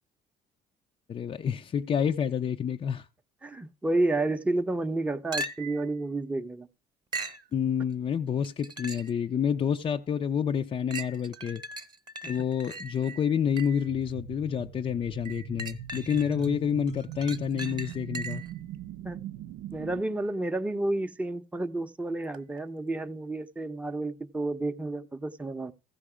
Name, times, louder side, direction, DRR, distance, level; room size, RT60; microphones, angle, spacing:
voice 1, 1.1-3.1 7.5-11.6 12.3-18.4, left 8 dB, 35° left, 0.4 m, -28 dB
voice 2, 3.4-6.7 19.0-19.2 19.7-25.7, right 2 dB, 10° right, 0.6 m, -30 dB
sound 1, 5.3-5.9 7.1-7.5 8.4-9.2 9.8-9.9 10.9-13.9 15.3-16.5 16.9-18.6 22.3-22.4, right 2 dB, 25° right, 1.0 m, -39 dB
sound 2, 13.9-20.0, right 11 dB, 90° right, 0.5 m, -41 dB
15.0 x 5.2 x 4.9 m
cardioid pair, 110°, 17 cm